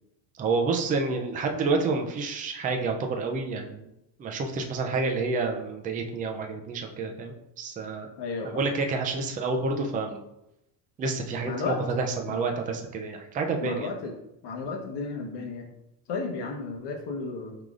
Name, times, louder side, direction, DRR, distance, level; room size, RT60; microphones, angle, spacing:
voice 1, 0.4-3.9 4.2-8.1 8.5-10.2 11.0-13.9, right 3 dB, 20° right, 3 dB, 0.3 m, -29 dB
voice 2, 8.2-8.6 11.4-11.8 12.3-12.4 13.6-14.2 14.4-15.7 16.1-17.6, left 4 dB, 55° left, 2 dB, 1.0 m, -33 dB
4.8 x 3.8 x 2.4 m, 0.87 s
cardioid pair, 120°, 50 cm